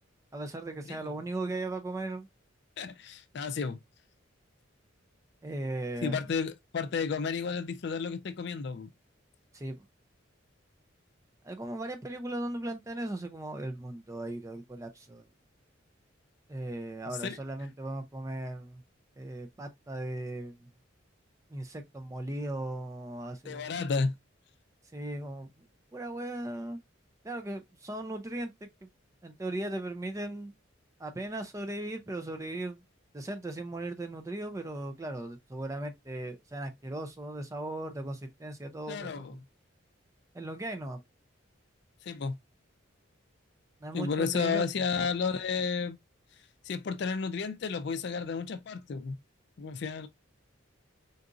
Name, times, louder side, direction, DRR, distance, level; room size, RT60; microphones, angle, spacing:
voice 1, 0.3-2.3 5.4-6.3 9.5-9.8 11.4-15.3 16.5-18.8 19.2-20.7 21.5-23.7 24.9-25.6 25.9-26.8 27.2-28.9 29.2-30.5 31.0-32.8 33.1-39.4 40.3-41.0 43.8-44.7, right 1 dB, 15° right, 0.4 m, -37 dB
voice 2, 2.8-3.8 6.0-8.9 17.2-17.4 23.5-24.1 38.9-39.3 42.0-42.3 43.9-46.0 46.7-49.1 49.6-50.1, left 5 dB, 55° left, 0.4 m, -32 dB
3.9 x 2.4 x 2.4 m
head